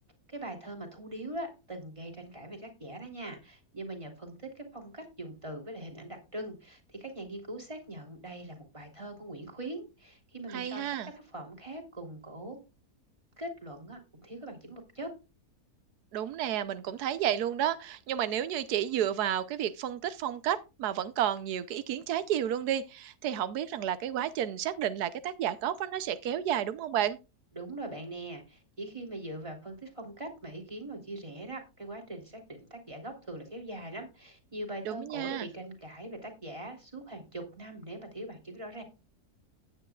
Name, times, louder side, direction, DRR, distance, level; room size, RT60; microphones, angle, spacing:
voice 1, 0.3-12.6 13.4-15.1 27.5-38.8, right 1 dB, 20° right, 3.2 m, -42 dB
voice 2, 10.5-11.1 16.1-27.2 34.9-35.5, right 10 dB, 90° right, 1.3 m, -31 dB
15.5 x 9.9 x 2.3 m
omnidirectional pair, 1.6 m